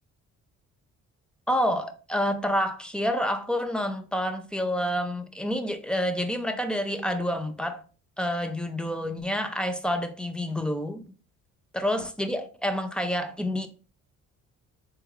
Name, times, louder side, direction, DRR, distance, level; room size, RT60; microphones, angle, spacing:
voice 1, 1.5-7.8 8.2-11.0 11.7-13.7, equal, 5° left, 0.4 m, -28 dB
3.5 x 2.3 x 2.9 m
cardioid pair, 90°, 30 cm